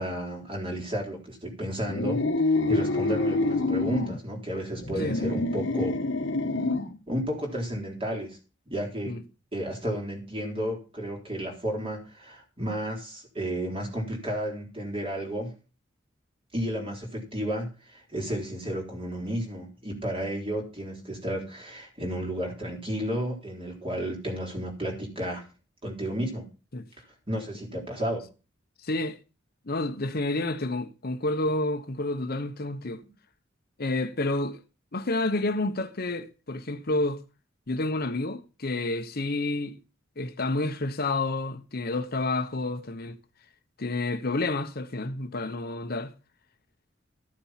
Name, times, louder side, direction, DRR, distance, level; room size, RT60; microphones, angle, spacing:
voice 1, 0.0-5.9 7.1-8.4 8.7-9.2 9.5-15.6 16.5-25.4 25.8-26.5 27.3-28.3, equal, 30° right, 4.0 m, -32 dB
sound 1, 1.9-4.2 4.8-7.0, left 2 dB, 75° left, 1.3 m, -26 dB
voice 2, 28.8-29.2 29.7-33.0 33.8-34.6 34.9-37.2 37.7-39.8 40.2-43.2 43.8-46.1, left 2 dB, 55° left, 1.0 m, -29 dB
13.5 x 7.2 x 5.8 m
head